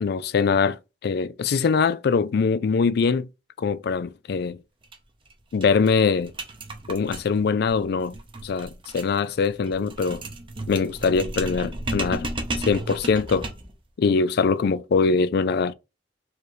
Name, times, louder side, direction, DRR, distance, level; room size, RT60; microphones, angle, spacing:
voice 1, 0.0-3.3 3.6-4.6 5.5-6.3 6.9-8.2 8.4-10.2 10.7-12.3 12.7-13.5 14.0-15.7, left 5 dB, 60° left, 0.4 m, -22 dB
sound 1, 4.8-5.0 5.3-5.4 5.6-13.8, right 2 dB, 30° right, 0.8 m, -34 dB
4.7 x 3.2 x 3.1 m
head